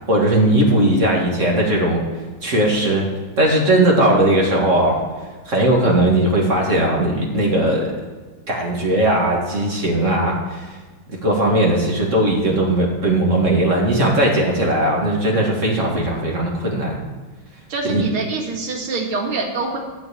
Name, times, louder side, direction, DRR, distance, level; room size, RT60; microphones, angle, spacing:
voice 1, 0.1-2.0 2.4-3.1 3.4-5.0 5.5-7.9 8.5-10.8 11.2-17.0 17.9-18.0, right 1 dB, 35° right, -2 dB, 2.1 m, -18 dB
voice 2, 17.7-19.8, right 3 dB, 90° right, 1 dB, 2.6 m, -25 dB
12.0 x 4.7 x 8.4 m, 1.4 s
omnidirectional pair, 2.3 m